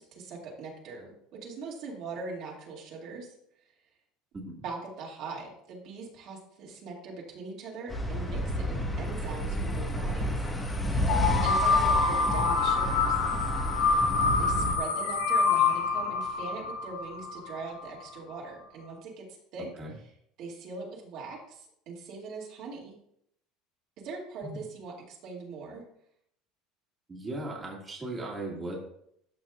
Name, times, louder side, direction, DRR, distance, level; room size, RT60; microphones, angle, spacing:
voice 1, 0.0-3.3 4.6-10.3 11.2-13.2 14.4-19.3 19.5-19.7 20.4-22.9 24.0-25.8, right 4 dB, 55° right, -3 dB, 2.4 m, -41 dB
sound 1, 7.9-14.8, equal, 10° left, 1.4 m, -30 dB
sound 2, 11.1-17.9, left 4 dB, 80° left, 0.9 m, -26 dB
voice 2, 27.1-28.8, right 2 dB, 20° right, -3 dB, 2.2 m, -37 dB
13.0 x 5.4 x 2.5 m, 0.72 s
cardioid pair, 140°, 0 cm